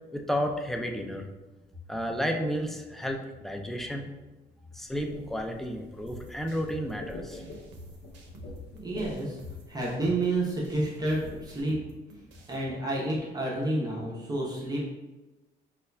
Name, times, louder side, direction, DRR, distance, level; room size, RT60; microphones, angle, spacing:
voice 1, 0.1-1.3 1.9-4.1 4.7-7.4, equal, ahead, 3 dB, 0.4 m, -32 dB
sound 1, 4.8-11.6, left 1 dB, 65° left, 0.6 m, -47 dB
sound 2, 6.1-12.6, equal, 85° right, 0.6 m, -50 dB
voice 2, 8.7-9.4 9.7-11.8 12.5-14.9, right 2 dB, 20° right, -5 dB, 0.8 m, -30 dB
5.1 x 2.4 x 2.2 m, 1.1 s
cardioid pair, 95°, 19 cm